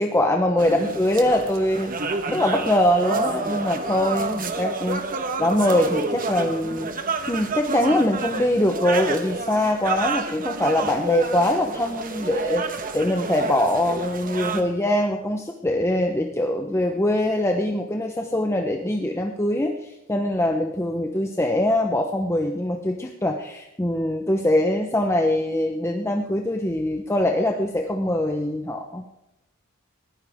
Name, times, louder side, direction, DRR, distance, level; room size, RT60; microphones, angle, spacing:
voice 1, 0.0-1.9 2.3-5.0 5.4-6.9 7.3-29.0, left 1 dB, 15° left, 2 dB, 0.9 m, -23 dB
sound 1, 0.6-14.6, right 3 dB, 40° right, 1.4 m, -29 dB
20.0 x 15.0 x 3.6 m, 0.92 s
head